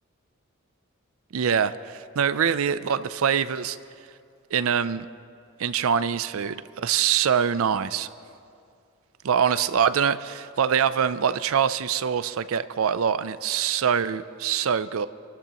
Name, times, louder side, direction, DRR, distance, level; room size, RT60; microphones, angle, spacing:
voice 1, 1.3-3.8 4.5-5.1 5.6-8.1 9.2-15.1, right 7 dB, 70° right, 14 dB, 0.4 m, -24 dB
27.5 x 12.5 x 3.0 m, 2.4 s
head